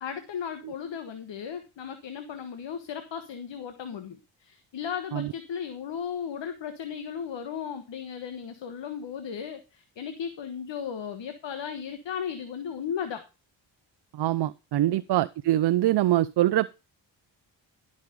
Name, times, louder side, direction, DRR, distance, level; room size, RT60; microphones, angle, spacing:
voice 1, 0.0-13.2 14.9-15.0, left 7 dB, 65° left, 8 dB, 1.5 m, -36 dB
voice 2, 14.1-16.7, right 14 dB, 55° right, 14 dB, 0.6 m, -24 dB
11.5 x 6.4 x 5.2 m, 0.28 s
supercardioid pair, 60°, 48 cm